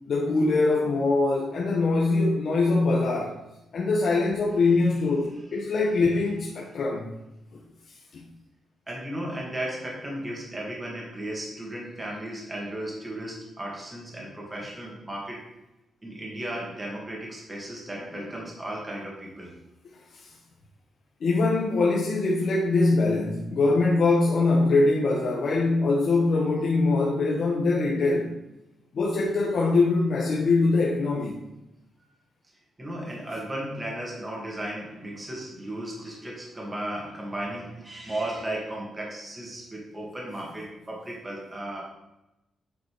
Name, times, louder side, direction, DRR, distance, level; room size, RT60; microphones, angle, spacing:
voice 1, 0.1-3.4 3.7-7.2 8.1-8.2 20.1-20.3 21.2-28.3 28.9-31.3, left 3 dB, 55° left, -2 dB, 1.1 m, -23 dB
voice 2, 8.9-15.5 16.0-19.6 32.8-41.9, right 1 dB, 20° right, -2 dB, 2.1 m, -35 dB
8.6 x 4.1 x 4.8 m, 0.92 s
cardioid pair, 125°, 0 cm